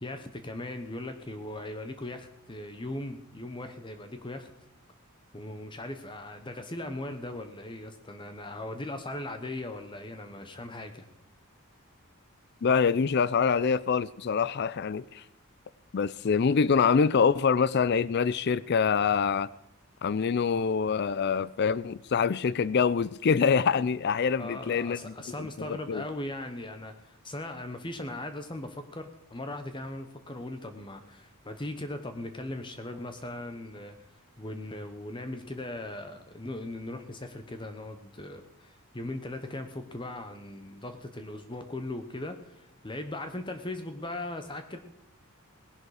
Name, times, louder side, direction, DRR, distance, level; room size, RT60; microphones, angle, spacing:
voice 1, 0.0-4.5 5.3-11.1 24.4-34.1 34.4-44.8, left 1 dB, 20° left, 0.9 m, -39 dB
voice 2, 12.6-15.2 15.9-19.5 20.0-26.0, left 6 dB, 50° left, 0.4 m, -25 dB
19.0 x 11.0 x 4.9 m
head